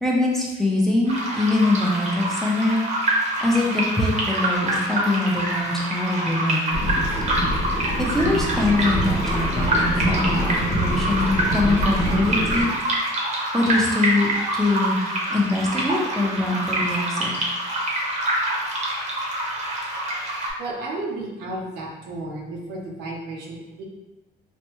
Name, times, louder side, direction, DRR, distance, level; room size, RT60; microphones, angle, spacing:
voice 1, 0.0-2.8 3.4-6.8 8.0-12.7 13.5-15.0 15.3-17.3, left 2 dB, ahead, -4 dB, 0.6 m, -23 dB
sound 1, 1.1-20.5, right 1 dB, 45° right, 0.8 m, -26 dB
sound 2, 6.7-12.6, equal, 50° left, 0.9 m, -26 dB
voice 2, 20.6-23.8, right 2 dB, 80° right, -1 dB, 0.7 m, -33 dB
3.2 x 2.2 x 3.0 m, 1.1 s
cardioid pair, 110°, 17 cm